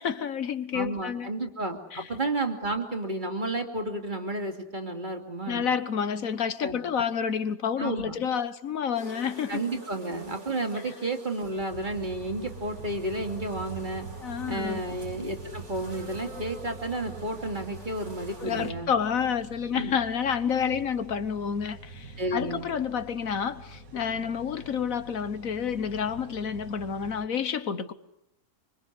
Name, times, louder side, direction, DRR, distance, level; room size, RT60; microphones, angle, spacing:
voice 1, 0.0-1.3 1.9-2.1 5.5-9.6 14.2-14.8 18.4-27.9, left 7 dB, 65° left, 1.6 m, -29 dB
voice 2, 0.7-5.7 6.6-6.8 7.8-8.2 9.5-14.1 14.5-18.9 19.7-19.9 22.2-22.6 24.1-24.2, right 2 dB, 30° right, 2.8 m, -32 dB
sound 1, 8.9-18.7, right 1 dB, 50° right, 3.7 m, -47 dB
sound 2, 11.7-27.3, right 4 dB, 70° right, 2.5 m, -44 dB
25.5 x 25.5 x 8.3 m
omnidirectional pair, 1.5 m